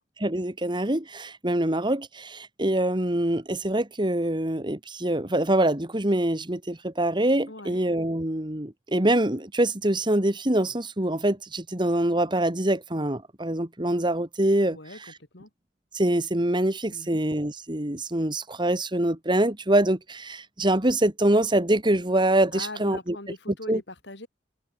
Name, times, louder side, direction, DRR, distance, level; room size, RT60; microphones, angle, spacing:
voice 1, 0.2-15.1 15.9-23.2 23.7-23.8, right 1 dB, 25° right, 2.2 m, -25 dB
voice 2, 7.5-7.8 14.7-15.0 15.3-15.5 16.9-17.2 22.5-24.3, left 2 dB, 70° left, 5.0 m, -40 dB
head